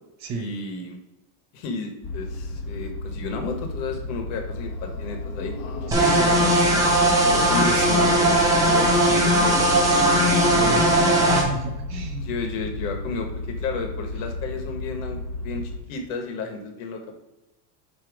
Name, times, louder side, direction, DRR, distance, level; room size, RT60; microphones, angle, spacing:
voice 1, 0.3-1.0 1.5-5.5 7.3-10.8 12.2-17.1, left 4 dB, 65° left, 4 dB, 1.6 m, -33 dB
sound 1, 2.0-15.8, left 2 dB, 30° left, 1.2 m, -33 dB
sound 2, 4.5-11.3, left 5 dB, 50° left, 1.1 m, -34 dB
sound 3, 5.9-11.4, right 1 dB, 10° right, 1.0 m, -19 dB
voice 2, 5.9-6.3 9.8-10.2 10.6-12.2, right 4 dB, 40° right, 5 dB, 0.9 m, -31 dB
8.1 x 3.2 x 4.8 m, 1.0 s
cardioid pair, 160°, 43 cm